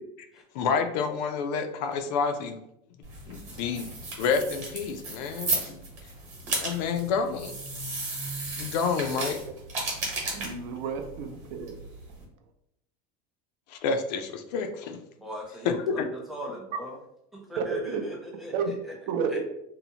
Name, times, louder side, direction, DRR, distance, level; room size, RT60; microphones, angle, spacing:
voice 1, 0.5-2.6 3.3-5.8 6.6-7.5 8.6-9.4 13.7-15.0 15.6-16.1, left 5 dB, 80° left, 7 dB, 0.4 m, -29 dB
sound 1, 3.0-12.2, right 3 dB, 35° right, 1.0 m, -35 dB
voice 2, 10.3-11.8 17.6-18.1 18.5-18.7 19.1-19.4, right 5 dB, 70° right, 5 dB, 0.5 m, -30 dB
voice 3, 15.2-17.0 17.3-18.9 19.3-19.4, equal, ahead, -2 dB, 0.6 m, -40 dB
2.7 x 2.0 x 2.7 m, 0.77 s
supercardioid pair, 140°, 21 cm